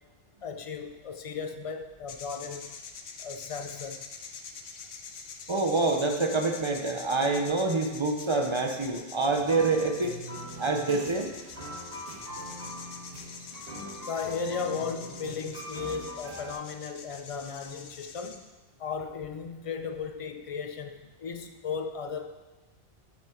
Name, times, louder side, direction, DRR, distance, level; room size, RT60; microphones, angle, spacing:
voice 1, 0.4-2.7 3.2-4.0 14.1-18.4 18.8-22.3, left 5 dB, 40° left, 7 dB, 0.5 m, -36 dB
sound 1, 2.1-18.4, left 5 dB, 70° left, 1.0 m, -45 dB
voice 2, 5.5-10.1 10.6-11.3, right 3 dB, 30° right, 4 dB, 0.7 m, -26 dB
sound 2, 9.3-16.5, equal, 55° right, 2.4 m, -42 dB
8.6 x 6.4 x 4.4 m, 1.1 s
omnidirectional pair, 1.2 m